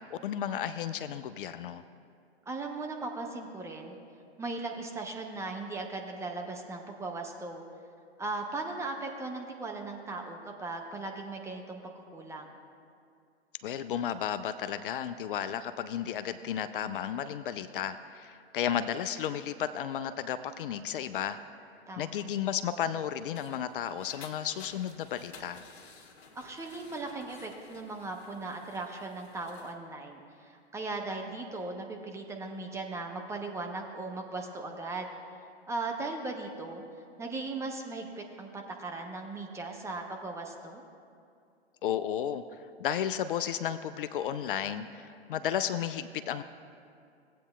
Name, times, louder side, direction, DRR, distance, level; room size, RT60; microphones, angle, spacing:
voice 1, 0.1-1.8 13.6-21.4 22.0-25.6 41.8-42.4 42.8-46.4, left 9 dB, 50° left, 11 dB, 0.4 m, -33 dB
voice 2, 2.5-4.0 4.4-7.6 8.2-11.8 12.1-12.5 21.9-22.2 26.3-35.1 35.7-36.8 37.2-40.8, right 3 dB, 10° right, 2 dB, 0.6 m, -38 dB
sound 1, 22.9-29.7, left 4 dB, 70° left, 1.3 m, -54 dB
17.0 x 8.4 x 2.2 m, 2.4 s
figure-of-eight pair, 110°, 34 cm